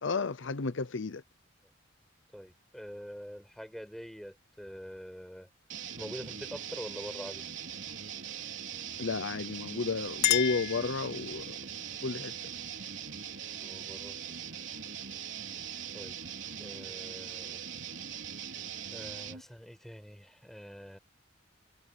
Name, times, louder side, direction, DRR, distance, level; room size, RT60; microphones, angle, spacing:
voice 1, 0.0-1.2 9.0-11.6 12.0-12.3, left 4 dB, 70° left, 0.7 m, -32 dB
voice 2, 2.3-5.5 6.0-7.4 13.6-14.4 15.9-16.2 16.5-17.6 18.9-21.0, equal, ahead, 5.1 m, -45 dB
sound 1, 5.7-19.4, right 8 dB, 70° right, 3.7 m, -41 dB
Chink clink, 9.7-11.5, left 14 dB, 55° left, 3.8 m, -32 dB
head